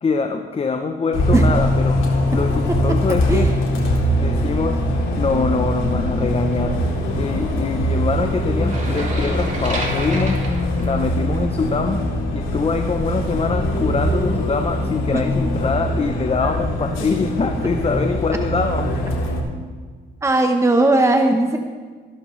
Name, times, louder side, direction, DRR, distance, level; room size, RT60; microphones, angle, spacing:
voice 1, 0.0-3.6 4.2-4.8 5.2-6.8 7.2-10.4 10.8-12.0 12.3-18.9, left 4 dB, 30° left, 5 dB, 0.8 m, -24 dB
Bus, 1.1-19.4, equal, 85° left, 2.7 m, -22 dB
sound 1, 8.6-11.6, right 2 dB, 40° right, 3.0 m, -30 dB
voice 2, 20.2-21.6, right 2 dB, 15° right, 5 dB, 0.9 m, -17 dB
15.5 x 12.0 x 3.2 m, 1.5 s
cardioid pair, 90°, 20 cm